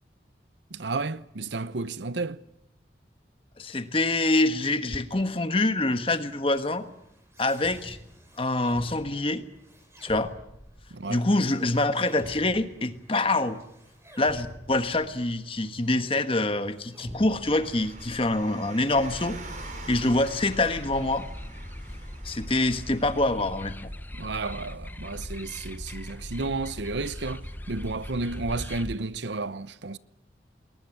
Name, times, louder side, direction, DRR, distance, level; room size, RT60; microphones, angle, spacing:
voice 1, 0.7-2.4 10.9-11.2 24.1-30.0, right 3 dB, 80° right, 0.8 m, -32 dB
voice 2, 3.6-6.8 7.4-8.0 8.4-9.4 10.0-10.3 11.1-13.6 14.2-19.4 19.9-21.2 22.2-23.9, left 2 dB, 30° left, 1.3 m, -25 dB
sound 1, 6.5-18.5, equal, 15° right, 5.4 m, -48 dB
Car, 17.5-23.3, right 2 dB, 45° right, 4.9 m, -44 dB
sound 2, 18.9-28.9, left 1 dB, 10° left, 1.0 m, -40 dB
21.0 x 20.0 x 9.8 m
head